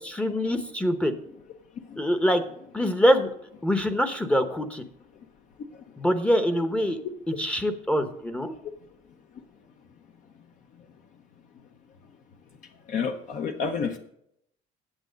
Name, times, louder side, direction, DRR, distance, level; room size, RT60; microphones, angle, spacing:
voice 1, 0.0-1.1 2.0-2.4 2.7-3.3 3.6-4.8 6.0-7.0 7.3-8.5, equal, 5° left, 8 dB, 0.9 m, -24 dB
voice 2, 12.9-14.0, left 5 dB, 50° left, 5 dB, 0.9 m, -30 dB
9.0 x 8.1 x 5.2 m, 0.71 s
cardioid pair, 150°, 17 cm